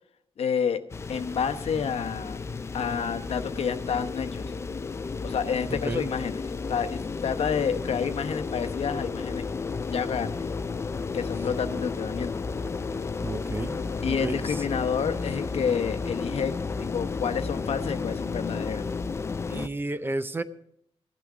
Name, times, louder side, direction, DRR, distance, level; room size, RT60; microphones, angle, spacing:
voice 1, 0.4-0.8 1.1-2.4 2.7-4.5 5.2-6.4 6.7-9.4 9.9-10.4 11.1-12.3 14.0-18.9, left 7 dB, 70° left, 9 dB, 1.0 m, -29 dB
sound 1, 0.9-19.7, left 4 dB, 25° left, 0.4 m, -32 dB
voice 2, 13.2-14.6 19.5-20.4, right 2 dB, 20° right, 12 dB, 0.6 m, -32 dB
15.0 x 12.0 x 4.9 m, 0.72 s
wide cardioid pair, 170°, 11 cm